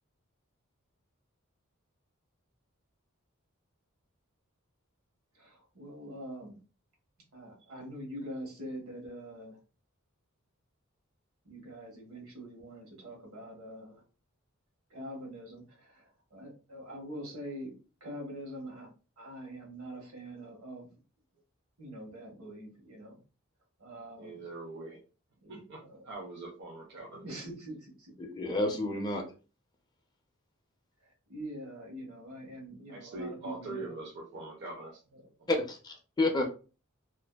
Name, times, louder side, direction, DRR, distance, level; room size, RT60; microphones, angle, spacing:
voice 1, 5.3-6.6 7.3-9.6 11.4-14.0 14.9-17.7 18.0-18.9 19.2-20.9 21.8-23.2 23.8-24.5 25.4-26.1 27.2-28.1 31.3-34.0 35.1-35.2, equal, 80° right, -1 dB, 1.1 m, -44 dB
voice 2, 24.2-25.0 25.5-27.4 32.9-35.0 35.4-35.5, right 2 dB, 55° right, -1 dB, 0.5 m, -43 dB
voice 3, 28.2-29.2 35.5-36.6, left 2 dB, 20° left, 3 dB, 0.4 m, -30 dB
2.5 x 2.3 x 2.2 m, 0.35 s
head